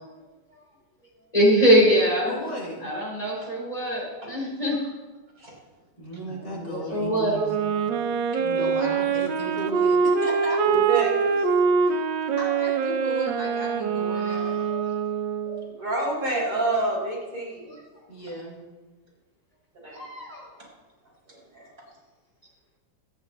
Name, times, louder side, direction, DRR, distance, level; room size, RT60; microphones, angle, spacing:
voice 1, 1.3-2.4 2.8-4.8 6.6-7.4 14.1-14.9 15.5-15.6 17.7-17.8 19.9-20.5, equal, 20° left, -5 dB, 4.7 m, -23 dB
voice 2, 2.3-2.9 6.0-7.9 8.3-10.6 11.8-12.0 12.4-14.5 18.1-18.7, equal, 70° left, -4 dB, 3.5 m, -35 dB
Wind instrument woodwind instrument, 7.3-15.6, right 6 dB, 90° right, 1.5 m, -24 dB
voice 3, 10.6-11.5 15.8-17.8 19.7-20.1 21.3-21.7, right 2 dB, 50° right, -5 dB, 4.9 m, -28 dB
25.0 x 9.3 x 2.6 m, 1.3 s
omnidirectional pair, 1.9 m